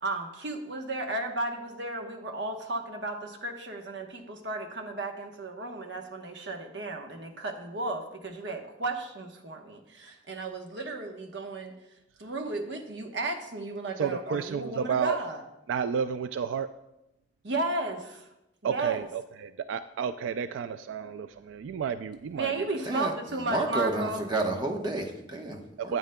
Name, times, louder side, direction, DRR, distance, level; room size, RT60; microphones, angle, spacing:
voice 1, 0.0-11.7 12.2-15.4 17.4-18.3 18.6-19.1 22.3-24.2, right 2 dB, 65° right, 4 dB, 1.0 m, -34 dB
voice 2, 14.0-15.2 15.7-16.7 18.6-22.7 25.9-26.0, right 7 dB, 85° right, 11 dB, 0.3 m, -31 dB
voice 3, 22.8-26.0, right 2 dB, 25° right, 1 dB, 1.0 m, -31 dB
13.0 x 9.0 x 2.2 m, 0.90 s
head